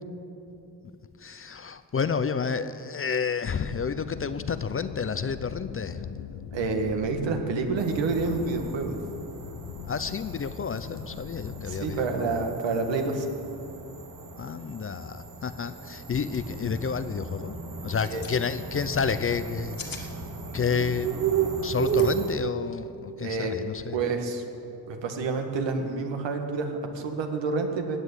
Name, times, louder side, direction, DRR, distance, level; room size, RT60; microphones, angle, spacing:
voice 1, 1.2-6.2 9.9-12.4 14.4-17.6 17.8-20.1 20.5-21.2 21.5-24.0, left 6 dB, 30° left, 12 dB, 0.5 m, -30 dB
sound 1, 3.6-12.0, left 9 dB, 80° left, 0.8 m, -41 dB
voice 2, 6.5-9.0 11.7-13.3 18.1-18.2 23.2-23.6 23.9-24.4 24.9-28.0, right 4 dB, 80° right, 4 dB, 1.9 m, -28 dB
sound 2, 7.8-22.3, right 7 dB, 45° right, 1.8 m, -34 dB
sound 3, 16.2-16.4 16.7-17.0 17.8-18.4 19.5-20.1 21.8-22.1, left 5 dB, 50° left, 2.0 m, -41 dB
16.0 x 9.5 x 8.3 m, 2.8 s
cardioid pair, 125°, 44 cm